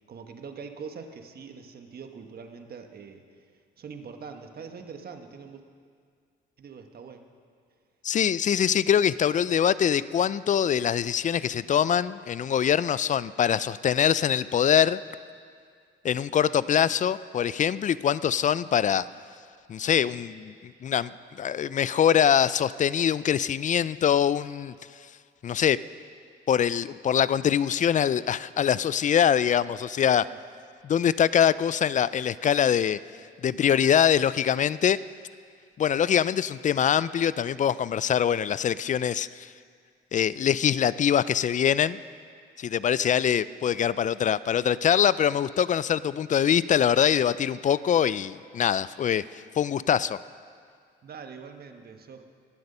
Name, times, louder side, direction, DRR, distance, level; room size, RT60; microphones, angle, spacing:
voice 1, 0.0-3.5 3.8-5.6 6.6-7.2 30.2-30.4 51.0-52.2, right 5 dB, 50° right, 6 dB, 1.3 m, -43 dB
voice 2, 8.0-15.0 16.0-19.1 19.7-21.1 21.4-24.7 25.4-25.8 26.5-30.2 30.8-33.0 33.4-35.0 35.8-39.5 40.1-42.0 42.6-50.2, left 9 dB, 40° left, 18 dB, 0.4 m, -23 dB
20.5 x 7.9 x 5.5 m, 2.1 s
cardioid pair, 90°, 20 cm